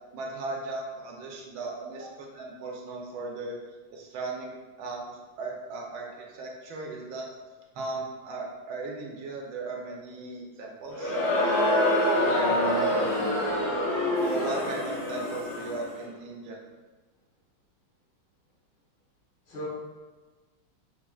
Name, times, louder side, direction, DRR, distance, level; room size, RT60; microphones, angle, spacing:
voice 1, 0.1-3.6 3.9-4.5 4.8-7.3 7.7-11.2 14.2-16.6, right 3 dB, 80° right, 0 dB, 1.6 m, -37 dB
Crowd, 10.9-15.9, left 1 dB, 85° left, 0.4 m, -26 dB
voice 2, 12.2-13.4 19.5-19.7, left 1 dB, 65° left, -4 dB, 1.7 m, -33 dB
6.0 x 3.8 x 2.3 m, 1.3 s
omnidirectional pair, 2.2 m